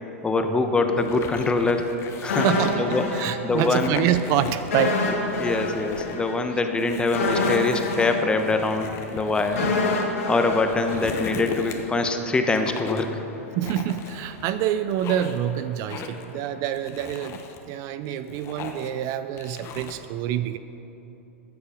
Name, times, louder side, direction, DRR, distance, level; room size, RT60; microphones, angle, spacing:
voice 1, 0.2-2.5 2.8-3.0 3.4-3.9 5.4-9.6 10.3-13.1, left 3 dB, 15° left, 6 dB, 1.0 m, -24 dB
sound 1, 1.0-3.1 3.5-4.9 5.2-6.2 6.8-10.1 10.5-12.0 12.5-13.2 13.6-14.5 14.9-15.5 15.9-16.3 16.7-17.6 18.1-19.0 19.4-20.0, left 6 dB, 35° left, 1.1 m, -38 dB
sound 2, 2.3-3.9 4.2-4.3 4.7-11.8 12.1-12.2, left 3 dB, 80° left, 2.0 m, -27 dB
voice 2, 2.4-5.0 9.6-9.7 13.6-20.6, right 11 dB, 45° right, 12 dB, 0.5 m, -26 dB
14.5 x 8.2 x 5.0 m, 3.0 s
hypercardioid pair, 110°, 7 cm